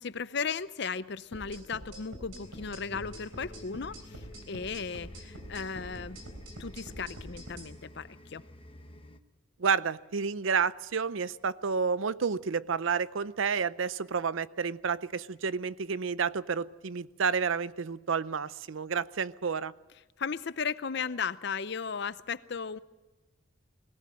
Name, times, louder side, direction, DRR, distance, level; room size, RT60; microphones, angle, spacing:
voice 1, 0.0-6.2 6.6-8.4 20.2-22.8, left 5 dB, 55° left, 15 dB, 0.6 m, -36 dB
sound 1, 1.3-7.7, right 1 dB, 90° right, 4.1 m, -45 dB
sound 2, 2.4-9.2, left 1 dB, 25° left, 1.0 m, -50 dB
voice 2, 9.6-19.7, right 5 dB, 70° right, 17 dB, 0.6 m, -30 dB
21.5 x 17.5 x 7.7 m, 1.2 s
head